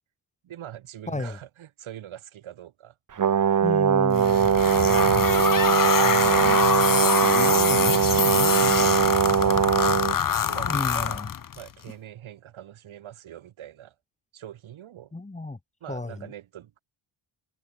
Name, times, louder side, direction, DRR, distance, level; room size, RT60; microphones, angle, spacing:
voice 1, 0.4-2.9 4.2-7.2 7.4-9.8 10.4-11.2 11.5-13.9 14.3-15.1 15.8-16.8, right 11 dB, 80° right, 3.3 m, -42 dB
voice 2, 1.1-1.4 3.6-4.5 10.6-11.3 15.1-15.6 15.9-16.3, left 2 dB, 15° left, 2.1 m, -32 dB
Brass instrument, 3.2-10.2, right 8 dB, 40° right, 1.2 m, -21 dB
sound 1, 4.1-11.7, left 8 dB, 45° left, 1.4 m, -25 dB
cardioid pair, 110°, 47 cm